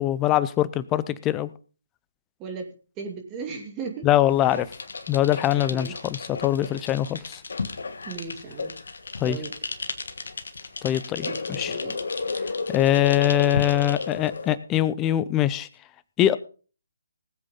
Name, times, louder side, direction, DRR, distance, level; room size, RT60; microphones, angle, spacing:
voice 1, 0.0-1.5 4.0-4.7 5.1-7.4 9.2-9.4 10.8-11.7 12.7-15.7 16.2-16.4, left 12 dB, 20° left, 16 dB, 0.6 m, -23 dB
voice 2, 3.0-4.1 5.7-5.9 8.0-8.7 9.2-9.5 11.3-12.0, right 5 dB, 20° right, 4 dB, 2.4 m, -36 dB
sound 1, 4.3-14.6, left 4 dB, 65° left, 1.5 m, -33 dB
19.0 x 8.1 x 3.8 m, 0.37 s
figure-of-eight pair, 145°, 0 cm